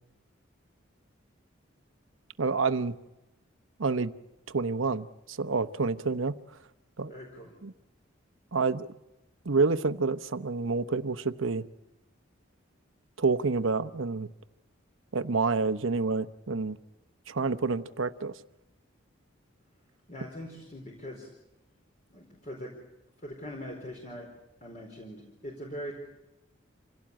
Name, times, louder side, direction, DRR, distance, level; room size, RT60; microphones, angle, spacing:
voice 1, 2.4-2.9 3.8-4.1 4.5-6.4 7.0-7.1 7.6-7.7 8.5-8.9 9.4-11.7 13.2-14.3 15.1-16.8 17.3-18.4, right 4 dB, 80° right, 0.9 m, -28 dB
voice 2, 7.1-7.5 20.1-21.3 22.1-22.7 23.2-24.3 24.6-25.9, equal, 40° left, 4.3 m, -41 dB
27.0 x 17.0 x 8.8 m
head